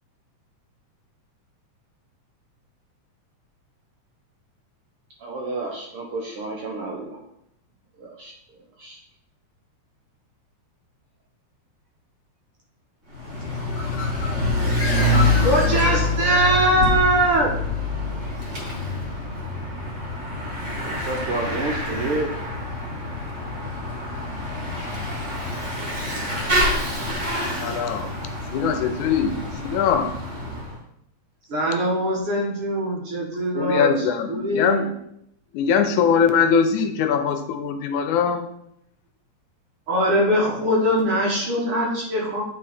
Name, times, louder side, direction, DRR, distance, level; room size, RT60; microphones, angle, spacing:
voice 1, 5.2-7.2 8.0-8.3 8.8-9.0 20.8-22.4, right 3 dB, 70° right, -1 dB, 1.3 m, -30 dB
Bicycle / Mechanisms, 13.1-30.7, left 2 dB, 25° right, 1.9 m, -26 dB
Bird, 13.5-16.6, left 3 dB, 75° left, 2.2 m, -32 dB
voice 2, 15.3-17.5 31.5-33.9 34.3-34.9 36.1-36.2 39.9-42.4, right 1 dB, 55° right, -3 dB, 2.0 m, -21 dB
voice 3, 27.6-28.1 28.5-30.1 33.5-34.9 35.5-38.5, left 7 dB, 90° left, 7 dB, 2.1 m, -21 dB
8.8 x 4.1 x 4.2 m, 0.75 s
omnidirectional pair, 3.5 m